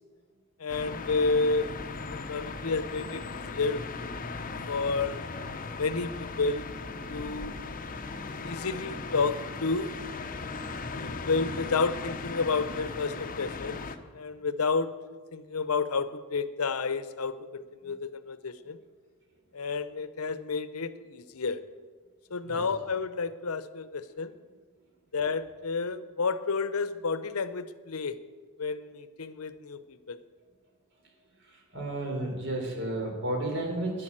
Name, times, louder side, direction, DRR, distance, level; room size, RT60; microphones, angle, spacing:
voice 1, 0.6-1.8 2.1-3.8 4.7-5.2 5.8-6.7 7.1-7.6 8.4-9.9 10.9-13.8 14.1-14.9 15.3-18.8 19.5-21.6 22.3-24.3 25.1-28.2 28.6-30.2, left 4 dB, 75° left, 13 dB, 0.7 m, -30 dB
sound 1, 0.7-14.0, left 4 dB, 40° left, 0.8 m, -38 dB
voice 2, 31.7-34.0, right 1 dB, 55° right, 1 dB, 3.7 m, -32 dB
11.0 x 10.5 x 7.4 m, 1.4 s
head